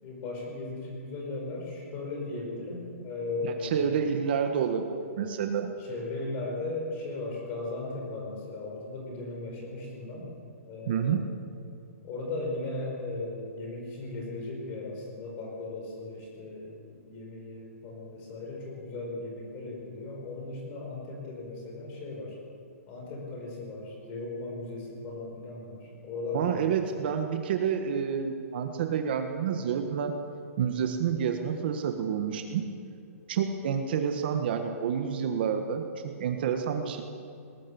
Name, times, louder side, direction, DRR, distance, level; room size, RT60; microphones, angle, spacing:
voice 1, 0.0-4.0 5.8-10.3 10.6-11.2 12.0-22.4 22.9-27.1, left 2 dB, 20° left, 0 dB, 4.9 m, -37 dB
voice 2, 3.4-4.8 5.2-5.7 10.9-11.2 26.3-30.1 30.6-32.6 33.3-37.0, right 7 dB, 40° right, 5 dB, 1.4 m, -29 dB
21.0 x 18.5 x 7.1 m, 2.5 s
hypercardioid pair, 175°, 8 cm